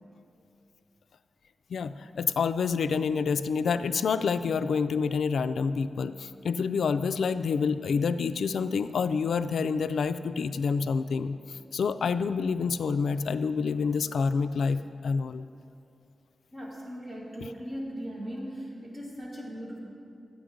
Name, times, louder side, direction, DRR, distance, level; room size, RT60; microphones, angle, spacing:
voice 1, 1.7-11.4 11.7-15.4, left 5 dB, 85° left, 11 dB, 0.3 m, -28 dB
voice 2, 16.5-19.8, equal, 20° right, -5 dB, 2.2 m, -39 dB
12.5 x 8.5 x 5.0 m, 2.5 s
wide cardioid pair, 175°, 0 cm